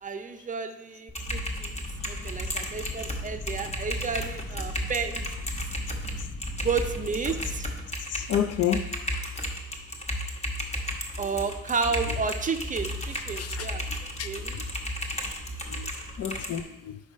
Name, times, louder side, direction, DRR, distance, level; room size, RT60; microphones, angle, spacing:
voice 1, 0.0-1.8 2.1-5.2 6.6-7.7 11.2-13.9 14.2-14.6, right 5 dB, 25° right, 7 dB, 0.5 m, -31 dB
Typing, 1.1-16.6, equal, 20° left, 1.1 m, -34 dB
sound 1, 1.2-7.8, left 1 dB, 85° left, 1.7 m, -39 dB
voice 2, 8.1-8.9 13.4-13.7 14.2-14.3 14.5-14.6 15.7-15.9 16.2-17.0, left 9 dB, 55° left, 10 dB, 0.4 m, -29 dB
5.3 x 3.7 x 5.1 m, 1.0 s
cardioid pair, 90°, 30 cm